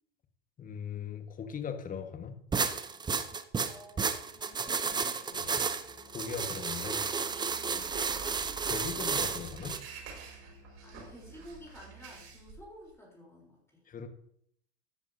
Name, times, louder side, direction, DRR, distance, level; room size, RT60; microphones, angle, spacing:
voice 1, 0.6-2.4 6.1-7.0 8.7-9.8 13.9-14.1, left 7 dB, 25° left, 7 dB, 1.6 m, -39 dB
sound 1, 2.5-9.8, right 5 dB, 15° right, 0.7 m, -32 dB
voice 2, 3.6-5.6 7.6-7.9 10.8-13.8, left 1 dB, 10° left, -3 dB, 3.8 m, -52 dB
Musical instrument, 5.3-12.4, right 5 dB, 55° left, 4.5 m, -54 dB
sound 2, 7.1-12.9, right 6 dB, 45° right, 5.4 m, -49 dB
14.0 x 10.5 x 2.8 m, 0.68 s
figure-of-eight pair, 85°, 33 cm